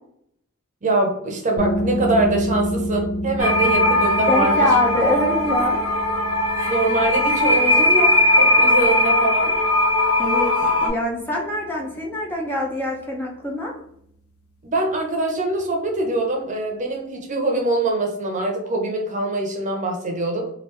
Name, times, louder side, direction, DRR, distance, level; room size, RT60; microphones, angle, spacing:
voice 1, 0.8-4.7 6.7-9.6 14.6-20.5, right 2 dB, 35° right, 1 dB, 0.7 m, -23 dB
sound 1, 1.6-12.9, equal, 90° left, 0.5 m, -30 dB
sound 2, 3.4-10.9, left 1 dB, 70° left, 0.9 m, -19 dB
voice 2, 4.3-5.8 10.2-13.7, left 1 dB, 10° left, -1 dB, 0.5 m, -24 dB
3.0 x 2.6 x 3.1 m, 0.70 s
head